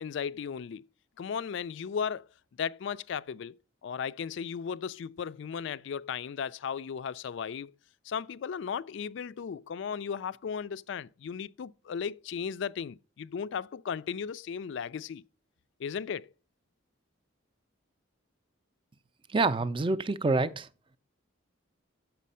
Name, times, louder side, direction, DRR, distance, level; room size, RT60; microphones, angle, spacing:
voice 1, 0.0-0.8 1.2-2.3 2.6-3.6 3.8-7.7 8.0-15.2 15.8-16.3, left 7 dB, 60° left, 0.3 m, -36 dB
voice 2, 19.3-20.7, right 3 dB, 25° right, 0.4 m, -27 dB
7.4 x 6.0 x 5.5 m
head